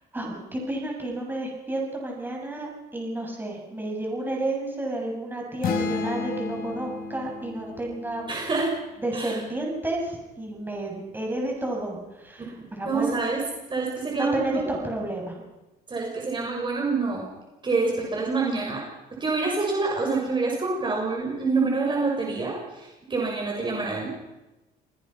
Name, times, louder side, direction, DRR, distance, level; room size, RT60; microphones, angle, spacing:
voice 1, 0.1-8.2 9.0-13.2 14.2-15.4, right 1 dB, 10° right, 0 dB, 7.7 m, -31 dB
sound 1, 5.6-9.4, left 4 dB, 60° left, 4.5 m, -33 dB
voice 2, 8.3-8.7 9.1-9.4 12.4-12.5 12.8-13.4 13.7-14.6 15.9-17.3 17.6-18.8 19.1-24.2, right 3 dB, 30° right, -1 dB, 6.6 m, -27 dB
29.0 x 20.0 x 5.9 m, 1.0 s
cardioid pair, 110°, 17 cm